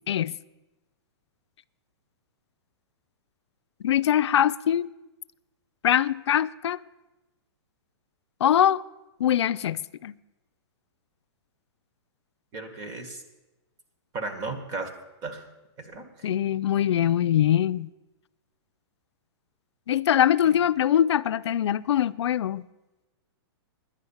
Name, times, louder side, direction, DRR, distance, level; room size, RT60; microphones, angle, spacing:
voice 1, 3.8-4.9 5.8-6.8 8.4-8.8 9.2-10.1 16.2-17.9 19.9-22.6, left 10 dB, 85° left, 0.4 m, -23 dB
voice 2, 12.5-13.2 14.1-14.9 15.2-15.5 15.8-16.3 20.4-20.6, right 3 dB, 25° right, 1.5 m, -35 dB
10.5 x 9.3 x 7.1 m
hypercardioid pair, 155°, 14 cm